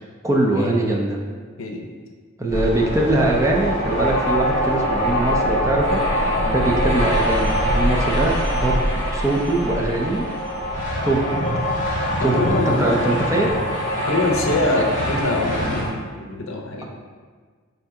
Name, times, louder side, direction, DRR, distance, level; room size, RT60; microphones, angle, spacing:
voice 1, 0.2-1.2 2.4-10.2 11.0-11.2 12.2-13.5 14.8-14.9, right 2 dB, 15° right, -1 dB, 0.4 m, -22 dB
sound 1, 2.5-15.9, equal, 35° left, 1.0 m, -23 dB
voice 2, 6.2-6.6 12.3-13.0 14.1-16.8, left 2 dB, 65° left, 1 dB, 0.6 m, -24 dB
5.1 x 2.8 x 3.5 m, 1.6 s
head